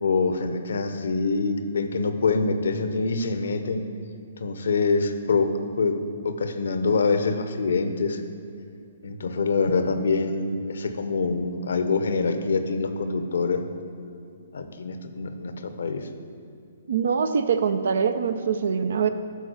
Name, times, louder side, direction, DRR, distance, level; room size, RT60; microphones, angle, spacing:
voice 1, 0.0-3.8 4.4-5.5 5.8-8.2 9.0-13.6 14.5-16.1, left 4 dB, 70° left, 8 dB, 0.7 m, -25 dB
voice 2, 16.9-19.1, right 6 dB, 65° right, 10 dB, 0.5 m, -23 dB
11.0 x 3.9 x 6.6 m, 2.6 s
figure-of-eight pair, 125°, 0 cm